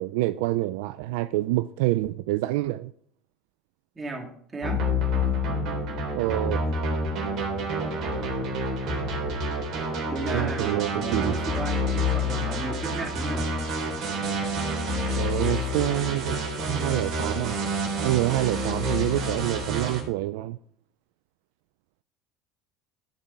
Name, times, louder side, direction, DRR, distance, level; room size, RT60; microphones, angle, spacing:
voice 1, 0.0-2.9 6.1-6.7 10.3-11.4 15.2-17.6 18.0-20.6, right 17 dB, 80° right, 0.3 m, -27 dB
voice 2, 4.0-4.9 10.1-13.5, right 2 dB, 25° right, 2.7 m, -34 dB
sound 1, 4.6-20.0, left 1 dB, 55° right, 3.4 m, -28 dB
13.0 x 5.3 x 4.6 m
hypercardioid pair, 85°, 0 cm